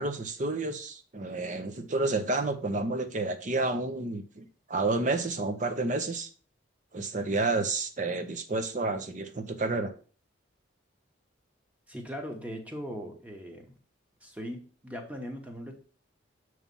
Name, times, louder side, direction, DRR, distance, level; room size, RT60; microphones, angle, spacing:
voice 1, 0.0-6.3 6.9-9.9, right 2 dB, 40° right, 9 dB, 0.6 m, -30 dB
voice 2, 11.9-13.7 14.2-15.8, equal, 5° right, 3 dB, 1.0 m, -39 dB
7.1 x 3.2 x 5.4 m, 0.40 s
head